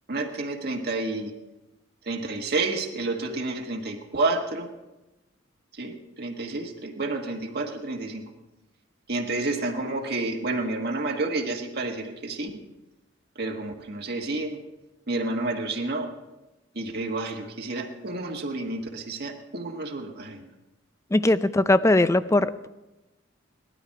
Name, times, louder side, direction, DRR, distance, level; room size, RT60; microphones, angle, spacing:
voice 1, 0.1-1.3 2.1-4.7 5.8-8.2 9.1-12.5 13.4-14.6 15.1-16.1 16.7-20.5, right 2 dB, 55° right, 1 dB, 1.5 m, -30 dB
voice 2, 21.1-22.7, left 2 dB, 15° left, 14 dB, 0.4 m, -20 dB
18.0 x 12.5 x 4.7 m, 1.0 s
head